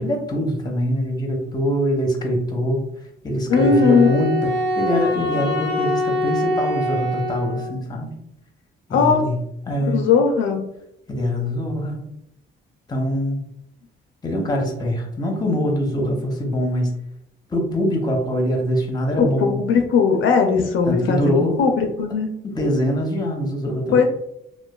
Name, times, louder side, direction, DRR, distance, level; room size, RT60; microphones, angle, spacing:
voice 1, 0.0-2.8 3.2-8.1 8.9-9.4 9.7-10.0 11.1-12.0 12.9-13.4 14.2-16.9 17.5-19.6 20.9-21.6 22.4-24.1, equal, 20° left, 2 dB, 0.7 m, -23 dB
voice 2, 3.5-4.1 8.9-9.2 9.9-10.6 19.2-21.2 21.6-22.3 23.9-24.0, left 5 dB, 75° left, 4 dB, 0.4 m, -18 dB
Wind instrument woodwind instrument, 3.5-7.8, left 2 dB, 65° right, 1.3 m, -24 dB
3.0 x 2.2 x 2.2 m, 0.78 s
cardioid pair, 90°, 20 cm